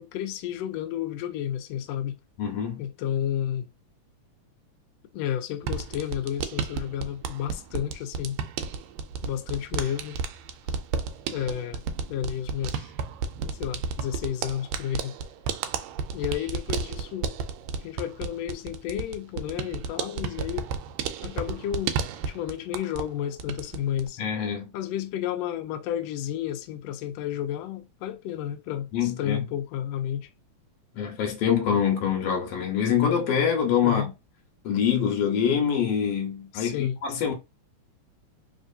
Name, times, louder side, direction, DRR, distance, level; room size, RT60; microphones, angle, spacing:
voice 1, 0.0-2.2 2.8-3.7 5.1-8.4 9.2-10.2 11.3-11.8 12.1-12.9 13.6-15.2 16.1-17.4 17.8-20.7 21.2-22.0 22.2-24.2 24.7-30.3 33.8-34.1 36.5-37.0, left 10 dB, 80° left, 1.5 m, -31 dB
voice 2, 2.4-2.8 24.2-24.7 28.9-29.4 31.0-34.1 34.6-37.3, left 8 dB, 65° left, 1.9 m, -25 dB
sound 1, 5.6-23.1 23.4-24.1, right 6 dB, 80° right, 1.7 m, -33 dB
4.5 x 2.9 x 2.7 m
omnidirectional pair, 3.5 m